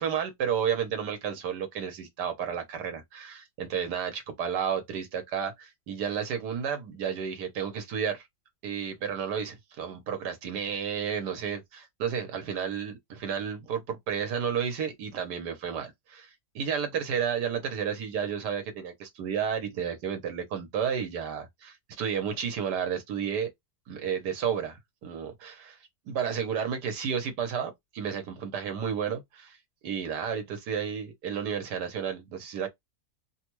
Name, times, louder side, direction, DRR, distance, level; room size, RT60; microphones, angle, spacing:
voice 1, 0.0-8.3 8.6-16.3 16.5-23.5 23.9-25.8 26.1-29.6 29.8-32.7, right 7 dB, 85° right, 1.5 m, -32 dB
3.2 x 2.3 x 3.0 m
omnidirectional pair, 1.7 m